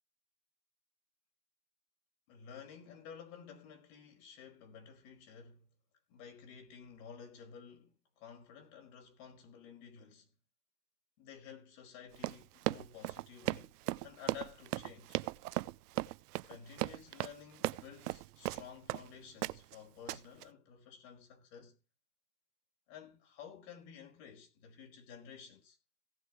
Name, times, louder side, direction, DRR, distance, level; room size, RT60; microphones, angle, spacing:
voice 1, 2.3-5.7 6.1-10.3 11.2-13.7 14.0-15.2 16.5-21.8 22.9-25.8, left 7 dB, 50° left, 5.1 m, -53 dB
Run, 12.1-19.1 19.4-19.7 20.1-20.4, right 17 dB, 85° right, 0.8 m, -37 dB
17.5 x 6.9 x 4.6 m
supercardioid pair, 160°, 45 cm